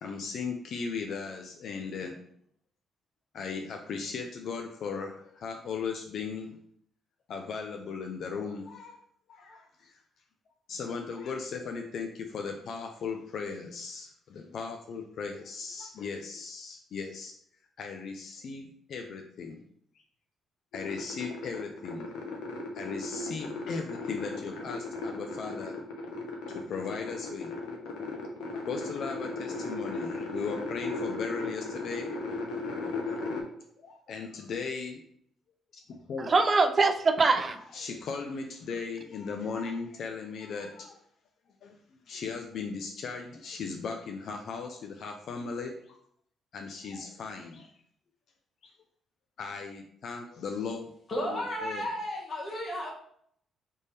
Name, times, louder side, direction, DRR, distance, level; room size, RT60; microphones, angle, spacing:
voice 1, 0.0-2.2 3.3-6.6 7.3-9.0 9.3-10.0 10.7-17.3 17.8-19.6 20.7-22.1 22.7-25.8 26.5-27.5 28.7-32.1 33.8-35.0 35.9-36.3 37.7-41.0 41.6-46.0 46.5-47.7 48.6-48.7 49.4-50.9 51.2-51.8, left 5 dB, 65° left, 3 dB, 0.5 m, -37 dB
sound 1, 20.7-33.4, left 3 dB, 90° left, 1.0 m, -36 dB
voice 2, 36.3-37.6, right 3 dB, 35° right, 8 dB, 0.5 m, -23 dB
voice 3, 51.1-52.9, equal, 45° left, -2 dB, 1.3 m, -33 dB
3.5 x 3.3 x 4.1 m, 0.66 s
cardioid pair, 90°, 0 cm